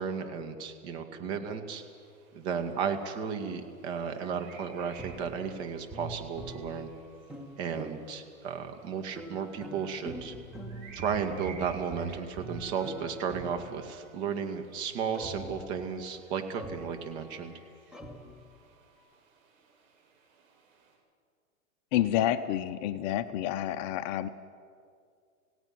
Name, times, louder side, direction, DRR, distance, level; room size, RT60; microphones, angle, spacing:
voice 1, 0.0-1.8 2.3-6.9 7.6-10.3 10.9-17.5, right 6 dB, 50° right, 6 dB, 2.4 m, -34 dB
sound 1, 1.7-20.9, right 5 dB, 70° right, 7.8 m, -56 dB
sound 2, 5.0-8.4 9.1-14.2 15.1-17.6 17.9-19.0, right 1 dB, ahead, 1.3 m, -45 dB
voice 2, 21.9-24.3, left 12 dB, 30° left, 10 dB, 0.6 m, -29 dB
27.5 x 17.0 x 6.1 m, 2.2 s
hypercardioid pair, 135°, 42 cm